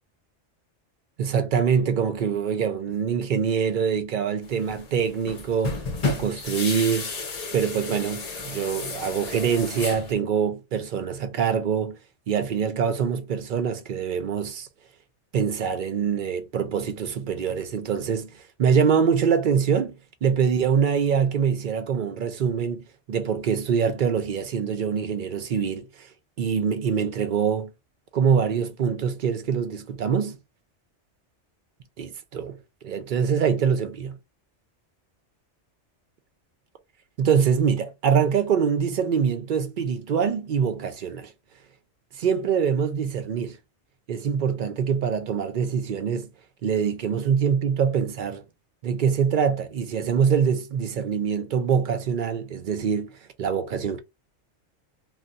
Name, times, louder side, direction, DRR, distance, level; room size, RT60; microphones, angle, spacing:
voice 1, 1.2-7.1 7.5-12.0 12.3-14.7 15.3-26.1 26.4-27.7 28.1-30.4 32.0-32.6 32.8-34.1 37.2-41.3 42.2-43.6 44.1-46.3 46.6-48.4 48.8-54.0, right 7 dB, 55° right, 0.6 m, -24 dB
sound 1, 4.4-10.1, left 3 dB, 40° left, 0.6 m, -32 dB
2.3 x 2.2 x 3.7 m
omnidirectional pair, 1.2 m